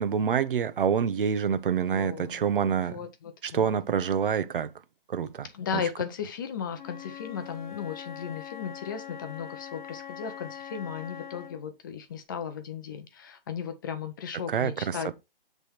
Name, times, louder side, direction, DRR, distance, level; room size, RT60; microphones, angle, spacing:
voice 1, 0.0-3.0 3.5-4.7 5.1-5.5 5.7-5.8 14.5-15.1, right 7 dB, 65° right, 0.9 m, -27 dB
voice 2, 1.7-2.5 2.8-3.7 5.5-15.1, left 7 dB, 20° left, 0.6 m, -36 dB
Wind instrument woodwind instrument, 6.7-11.7, left 9 dB, 50° left, 0.8 m, -42 dB
7.6 x 3.5 x 4.4 m
hypercardioid pair, 160°, 30 cm